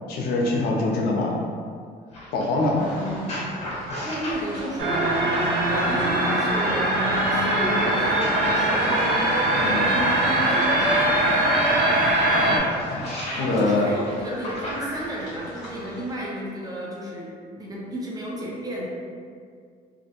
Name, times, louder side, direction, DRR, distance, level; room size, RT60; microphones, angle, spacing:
voice 1, 0.1-1.4 2.3-2.8 3.2-3.3 9.6-10.0 12.5-12.6 12.9-13.1 13.4-13.9, left 2 dB, 65° left, -2 dB, 0.5 m, -24 dB
sound 1, 2.1-6.2 7.1-11.3 11.9-15.3 16.1-16.3, left 1 dB, 40° left, 0.9 m, -36 dB
voice 2, 2.5-5.0 5.5-6.9 7.3-8.9 9.7-11.2 13.4-17.3 17.6-18.9, equal, 20° right, -4 dB, 0.5 m, -33 dB
sound 2, 2.8-16.1, equal, 5° right, 1.0 m, -37 dB
sound 3, 4.8-12.6, right 1 dB, 75° right, 0.5 m, -21 dB
2.4 x 2.0 x 2.8 m, 2.1 s
cardioid pair, 110°, 17 cm